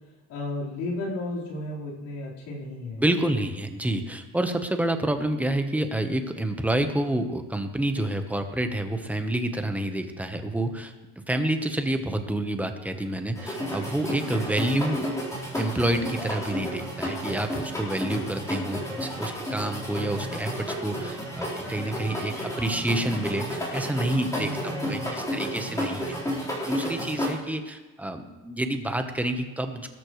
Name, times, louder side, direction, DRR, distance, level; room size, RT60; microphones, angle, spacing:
voice 1, 0.3-3.0 24.2-25.2, left 1 dB, 85° left, -6 dB, 4.3 m, -34 dB
voice 2, 3.0-10.9 11.3-15.1 15.6-26.2 26.6-29.9, right 1 dB, 5° right, 6 dB, 1.0 m, -28 dB
sound 1, 13.4-27.3, equal, 10° left, 4.1 m, -32 dB
18.5 x 13.5 x 3.2 m, 1.2 s
cardioid pair, 135°, 29 cm